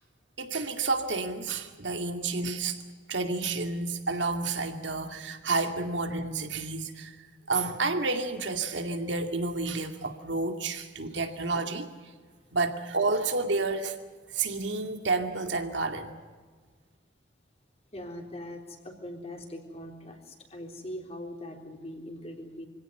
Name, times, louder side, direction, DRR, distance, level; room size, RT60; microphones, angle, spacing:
voice 1, 0.4-2.8 3.1-7.2 7.5-11.9 12.5-14.0 14.3-16.1, right 3 dB, 85° right, 5 dB, 2.4 m, -30 dB
voice 2, 17.9-22.7, left 1 dB, 35° left, 2 dB, 3.7 m, -41 dB
25.0 x 17.0 x 9.2 m, 1.5 s
head